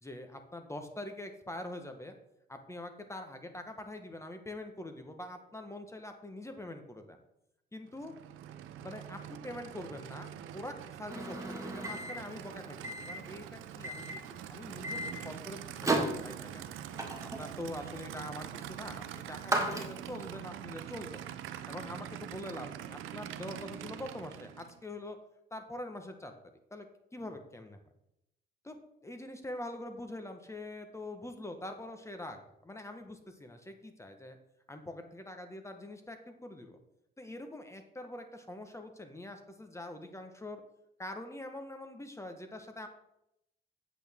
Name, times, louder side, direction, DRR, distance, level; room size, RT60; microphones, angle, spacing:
voice 1, 0.0-2.1 2.5-7.2 7.7-8.1 8.8-16.7 17.4-21.3 21.7-25.2 25.5-26.3 26.7-26.9 27.1-27.8 28.6-28.8 29.0-34.4 34.7-36.8 37.2-40.6 41.0-42.9, left 1 dB, 15° left, 6 dB, 1.2 m, -44 dB
Aircraft / Idling, 7.9-24.8, right 11 dB, 90° right, 0.6 m, -45 dB
Microwave oven, 11.1-20.3, right 2 dB, 15° right, 1.7 m, -37 dB
8.5 x 8.0 x 3.6 m, 0.82 s
cardioid pair, 90°, 20 cm